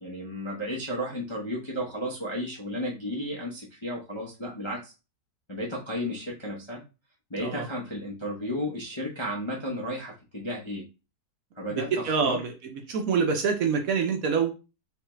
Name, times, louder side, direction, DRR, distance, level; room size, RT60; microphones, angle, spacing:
voice 1, 0.0-4.9 5.5-6.8 7.3-10.8 11.6-12.4, equal, 30° left, -4 dB, 0.5 m, -33 dB
voice 2, 11.7-12.5 12.9-14.5, right 5 dB, 65° right, 4 dB, 1.0 m, -26 dB
3.4 x 3.2 x 3.1 m, 0.30 s
omnidirectional pair, 1.8 m